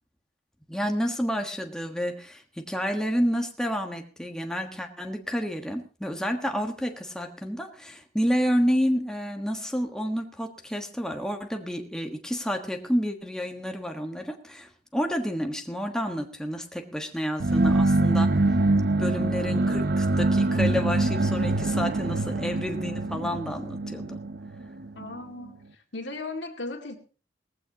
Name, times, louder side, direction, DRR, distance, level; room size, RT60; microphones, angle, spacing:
voice 1, 0.7-18.4 19.0-24.2, equal, 5° left, 1.4 m, -30 dB
sound 1, 17.4-25.2, right 2 dB, 60° right, 0.8 m, -24 dB
voice 2, 25.0-27.0, left 2 dB, 85° left, 2.2 m, -37 dB
18.5 x 15.5 x 2.9 m
head